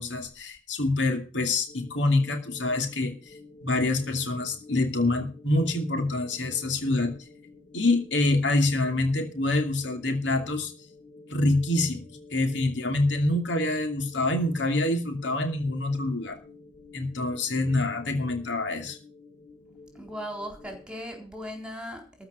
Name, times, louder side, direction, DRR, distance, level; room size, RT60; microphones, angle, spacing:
voice 1, 0.0-3.1 3.6-7.1 7.7-10.7 11.3-16.4 16.9-19.0, left 2 dB, 85° left, 4 dB, 2.7 m, -26 dB
sound 1, 1.7-20.9, left 3 dB, 60° left, 3.3 m, -50 dB
voice 2, 19.9-22.2, equal, 5° right, 2 dB, 3.9 m, -38 dB
14.0 x 5.7 x 8.2 m, 0.36 s
head